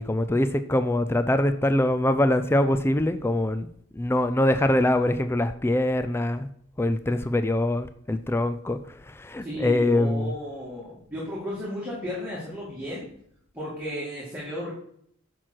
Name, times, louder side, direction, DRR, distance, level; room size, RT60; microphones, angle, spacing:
voice 1, 0.0-3.7 4.0-6.5 6.8-8.8 9.1-10.3, left 1 dB, 10° left, 10 dB, 0.4 m, -23 dB
voice 2, 9.4-13.1 13.5-14.7, equal, 5° right, -7 dB, 2.4 m, -34 dB
10.5 x 6.2 x 4.6 m, 0.66 s
head